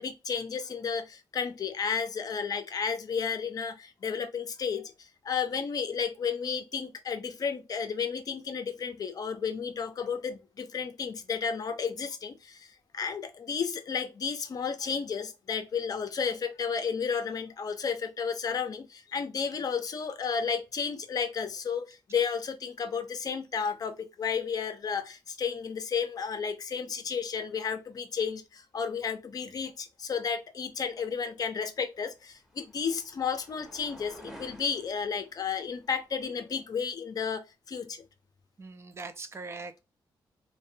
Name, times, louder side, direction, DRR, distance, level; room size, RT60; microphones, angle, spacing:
voice 1, 0.0-4.9 5.2-12.7 12.9-38.0, left 6 dB, 50° left, 0.5 m, -32 dB
sound 1, 31.4-36.7, equal, 5° right, 0.7 m, -53 dB
voice 2, 38.6-39.8, right 3 dB, 35° right, 0.3 m, -41 dB
2.5 x 2.1 x 2.6 m
cardioid pair, 100°, 8 cm